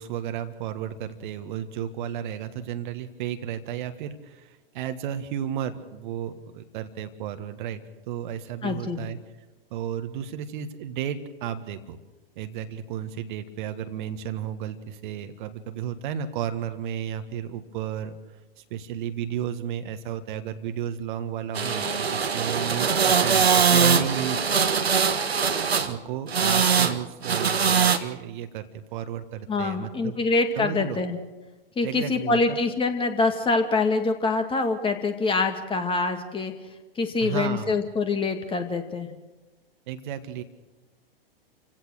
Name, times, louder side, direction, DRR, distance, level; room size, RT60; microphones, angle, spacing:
voice 1, 0.0-9.2 9.7-12.0 12.3-18.2 18.6-24.7 25.9-30.2 30.5-31.0 31.8-32.6 37.2-37.8 39.9-40.4, right 9 dB, 55° right, 8 dB, 1.7 m, -33 dB
voice 2, 8.6-9.0 29.5-31.2 31.8-36.5 37.0-39.1, left 3 dB, 15° left, 6 dB, 2.2 m, -25 dB
sound 1, 21.6-25.9 26.3-27.0 27.2-28.0, right 6 dB, 85° right, 1.5 m, -22 dB
28.5 x 17.0 x 6.5 m, 1.1 s
hypercardioid pair, 105°, 30 cm